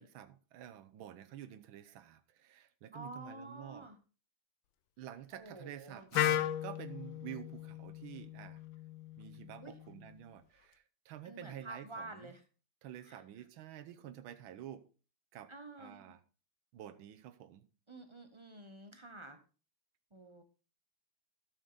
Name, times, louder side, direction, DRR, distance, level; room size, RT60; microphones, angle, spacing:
voice 1, 0.0-3.9 5.0-8.6 9.2-12.3 12.8-14.9 15.3-15.5 15.8-16.2 16.7-17.7, right 11 dB, 90° right, 1.6 m, -49 dB
voice 2, 2.9-4.0 5.3-6.1 9.6-9.7 11.2-12.4 13.1-13.2 15.5-16.0 17.9-19.4 20.1-20.4, right 2 dB, 30° right, 0.5 m, -49 dB
Wind instrument woodwind instrument, 6.1-10.0, left 12 dB, 80° left, 1.4 m, -37 dB
12.5 x 6.4 x 3.9 m
omnidirectional pair, 2.2 m